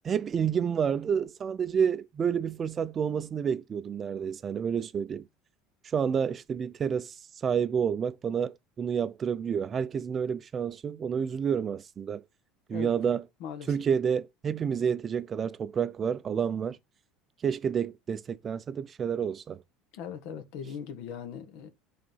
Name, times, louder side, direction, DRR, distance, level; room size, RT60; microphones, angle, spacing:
voice 1, 0.0-5.3 5.8-12.2 12.7-13.2 13.7-16.8 17.4-19.6, right 7 dB, 25° right, 0.5 m, -29 dB
voice 2, 13.4-13.7 19.9-21.7, left 7 dB, 65° left, 1.5 m, -39 dB
8.3 x 3.9 x 5.5 m
cardioid pair, 145°, 0 cm